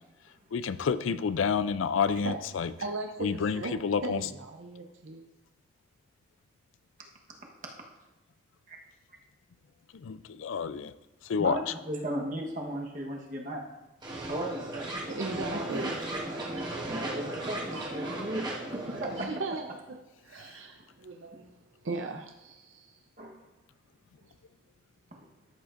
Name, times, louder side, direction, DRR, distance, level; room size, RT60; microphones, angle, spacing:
voice 1, 0.5-2.7 3.2-4.2 9.9-10.9 11.3-11.6, left 6 dB, 90° left, 14 dB, 0.4 m, -29 dB
voice 2, 2.8-3.8 4.0-5.3 15.1-16.6 17.4-18.2 19.2-19.7 20.2-21.6 21.8-23.0, right 3 dB, 90° right, 3 dB, 0.7 m, -38 dB
voice 3, 11.9-13.6 14.3-15.1 17.0-18.4 18.7-19.3 23.2-23.4 25.1-25.3, right 1 dB, 40° right, -1 dB, 1.2 m, -36 dB
sound 1, 14.0-19.2, right 1 dB, 20° right, 1.2 m, -35 dB
13.0 x 7.8 x 2.5 m, 1.0 s
head